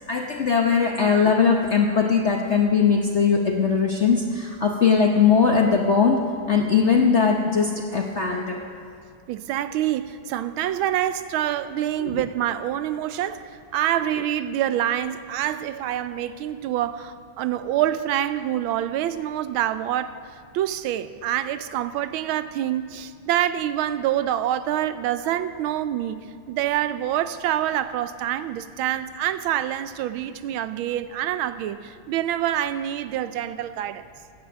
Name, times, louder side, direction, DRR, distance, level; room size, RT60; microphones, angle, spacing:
voice 1, 0.1-6.2 6.5-8.6 12.0-12.2, left 5 dB, 50° left, 0.8 m, -20 dB
voice 2, 9.3-20.2 20.5-26.2 26.5-34.0, right 11 dB, 80° right, 1.4 m, -26 dB
16.5 x 9.6 x 7.4 m
omnidirectional pair, 2.3 m